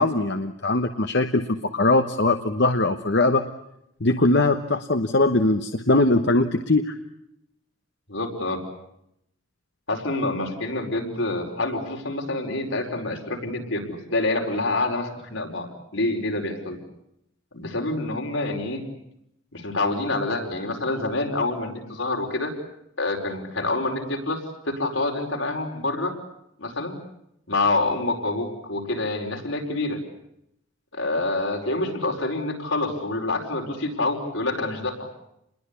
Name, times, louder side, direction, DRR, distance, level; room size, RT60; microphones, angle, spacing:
voice 1, 0.0-3.4 4.0-6.9, left 2 dB, 55° left, 7 dB, 1.1 m, -21 dB
voice 2, 8.1-8.6 9.9-16.8 17.5-18.8 19.5-22.5 23.0-26.1 26.6-27.0 27.5-30.0 30.9-34.9, left 2 dB, 75° left, 2 dB, 5.0 m, -27 dB
28.5 x 21.5 x 8.4 m, 0.79 s
head